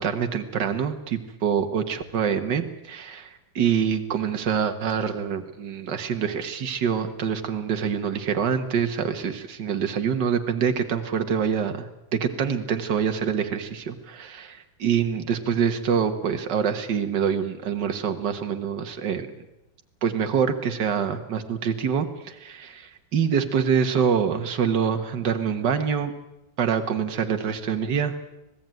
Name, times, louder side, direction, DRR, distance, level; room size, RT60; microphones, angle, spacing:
voice 1, 0.0-19.3 20.0-26.1 26.6-28.3, right 7 dB, 65° right, 6 dB, 2.2 m, -25 dB
26.0 x 18.0 x 9.2 m, 0.93 s
omnidirectional pair, 2.1 m